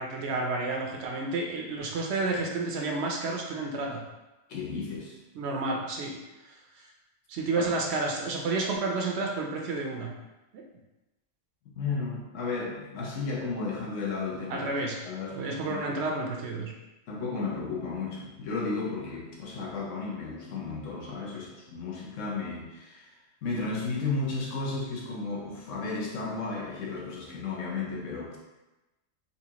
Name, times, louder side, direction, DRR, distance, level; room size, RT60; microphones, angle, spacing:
voice 1, 0.0-4.0 5.3-6.2 6.4-6.9 7.3-10.1 10.5-10.6 14.5-15.0 15.4-16.7, right 3 dB, 65° right, 0 dB, 0.8 m, -30 dB
voice 2, 4.5-5.2 7.6-7.7 11.7-14.7 15.0-15.8 17.1-23.1 23.4-28.4, left 4 dB, 75° left, -3 dB, 1.1 m, -33 dB
4.2 x 2.4 x 2.8 m, 1.0 s
omnidirectional pair, 1.3 m